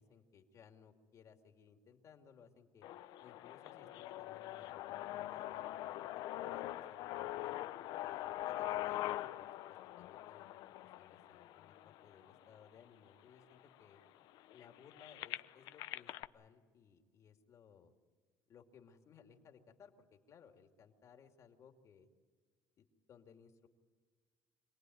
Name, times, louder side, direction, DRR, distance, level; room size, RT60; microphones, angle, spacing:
voice 1, 0.0-2.9 3.2-6.1 6.3-7.6 8.0-14.0 14.5-17.9 18.5-22.1 22.8-23.7, left 7 dB, 45° left, 4 dB, 2.7 m, -62 dB
sound 1, 2.8-12.8 13.4-13.5 13.8-16.3, left 14 dB, 70° left, 0.8 m, -43 dB
26.5 x 19.0 x 9.5 m, 1.5 s
cardioid pair, 120°, 8 cm